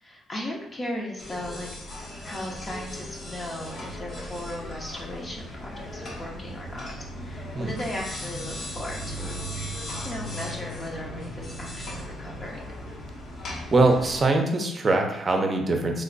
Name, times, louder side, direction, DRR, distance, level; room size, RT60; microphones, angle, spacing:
voice 1, 0.0-6.9 7.2-9.4 10.0-12.6, left 1 dB, 30° left, -2 dB, 0.7 m, -37 dB
sound 1, 1.2-14.2, equal, 60° left, 0.9 m, -37 dB
voice 2, 13.7-16.0, right 2 dB, 35° right, 3 dB, 0.6 m, -22 dB
3.2 x 2.2 x 3.9 m, 0.87 s
cardioid pair, 90°, 0 cm